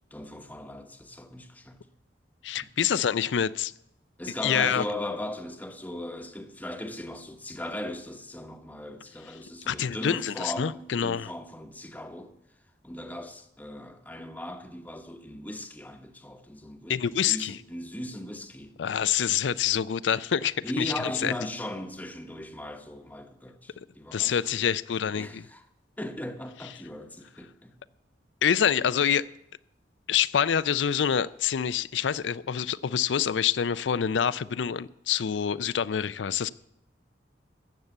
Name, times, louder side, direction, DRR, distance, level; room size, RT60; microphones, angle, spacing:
voice 1, 0.1-1.9 2.6-2.7 4.2-12.3 12.8-18.7 20.6-24.7 25.1-25.6 26.0-27.8, left 1 dB, 10° left, 0.9 m, -38 dB
voice 2, 2.4-3.7 4.4-4.8 9.7-11.3 16.9-17.5 18.8-21.3 24.1-25.5 28.4-29.3 30.1-36.5, left 8 dB, 80° left, 0.4 m, -26 dB
14.5 x 6.7 x 8.0 m
head